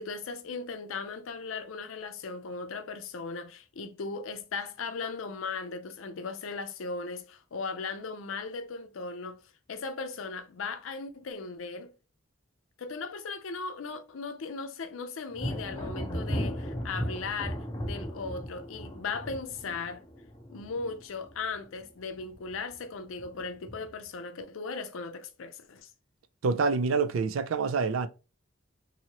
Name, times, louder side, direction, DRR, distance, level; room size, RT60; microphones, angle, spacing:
voice 1, 0.0-9.4 9.7-11.9 12.8-20.0 20.5-25.9, left 4 dB, 85° left, 0.5 m, -37 dB
Thunder, 15.3-21.8 22.1-22.7 23.2-24.0, equal, 20° left, 0.6 m, -36 dB
voice 2, 26.4-28.1, right 4 dB, 85° right, 0.4 m, -26 dB
2.9 x 2.7 x 2.8 m
head